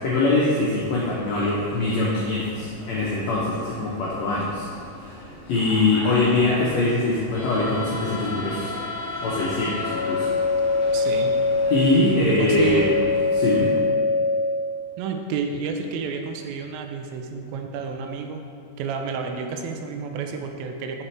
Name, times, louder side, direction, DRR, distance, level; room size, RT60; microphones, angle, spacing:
voice 1, 0.0-4.7 5.0-8.8 9.2-10.3 11.7-13.1 13.3-13.7, left 2 dB, 85° left, -6 dB, 1.5 m, -23 dB
sound 1, 0.7-13.8, left 2 dB, 60° left, 1.4 m, -37 dB
sound 2, 9.7-14.6, left 3 dB, 65° right, 2.7 m, -23 dB
voice 2, 10.9-11.5 12.2-13.0 15.0-18.5 18.8-21.0, right 5 dB, 85° right, 4 dB, 2.4 m, -30 dB
6.6 x 5.9 x 3.2 m, 2.3 s
omnidirectional pair, 4.1 m